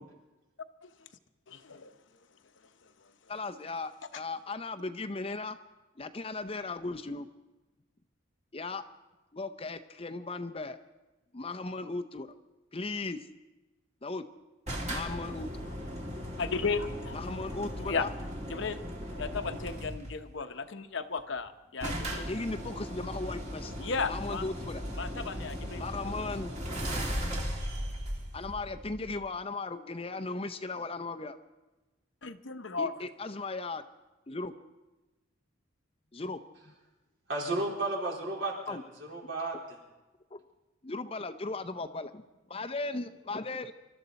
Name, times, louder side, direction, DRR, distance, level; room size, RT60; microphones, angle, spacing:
voice 1, 1.5-1.9 16.4-17.2 17.9-18.1 18.5-18.8 19.1-22.3 23.8-24.5 24.9-25.8 32.2-32.9, left 4 dB, 65° left, 9 dB, 0.9 m, -34 dB
voice 2, 3.3-5.6 6.0-7.3 8.5-8.8 9.3-10.8 11.3-12.3 12.7-13.2 14.0-14.2 14.9-15.7 17.1-18.1 22.3-23.7 24.1-24.8 25.8-26.5 28.3-31.4 32.8-33.8 34.3-34.5 36.1-36.4 36.7-36.8 38.7-38.8 40.3-40.4 40.8-42.2 42.5-43.7, left 3 dB, 30° left, 9 dB, 0.6 m, -37 dB
sound 1, 14.7-20.2 21.2-21.3 21.4-21.5 21.8-29.3, equal, 35° right, 2.4 m, -37 dB
voice 3, 37.3-39.8, right 2 dB, 65° right, -3 dB, 4.1 m, -33 dB
26.5 x 13.0 x 4.1 m, 1.1 s
head